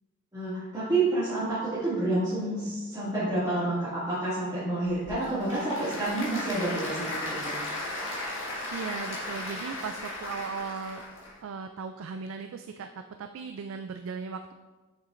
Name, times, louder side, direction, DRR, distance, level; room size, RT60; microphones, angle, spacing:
voice 1, 0.3-7.6, right 2 dB, 15° right, -14 dB, 2.2 m, -29 dB
Applause / Crowd, 4.9-11.3, left 1 dB, 65° left, 1.8 m, -36 dB
voice 2, 8.7-11.0 11.4-14.5, right 5 dB, 65° right, 6 dB, 0.3 m, -37 dB
7.2 x 6.7 x 2.5 m, 1.3 s
head